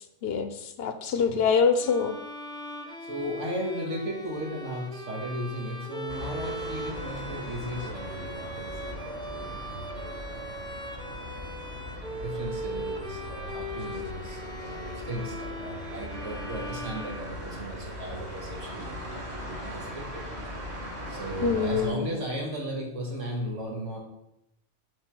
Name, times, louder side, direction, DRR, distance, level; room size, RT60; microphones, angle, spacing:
voice 1, 0.2-2.2 21.4-22.1, left 6 dB, 65° left, 9 dB, 0.8 m, -25 dB
voice 2, 1.1-1.5 3.0-10.6 11.2-20.2 21.1-24.0, equal, 85° right, 0 dB, 1.9 m, -36 dB
Bowed string instrument, 1.8-17.7, equal, 5° left, 0.4 m, -39 dB
sound 1, 6.1-21.9, equal, 30° right, 1.3 m, -39 dB
7.8 x 3.4 x 6.0 m, 0.84 s
omnidirectional pair, 1.2 m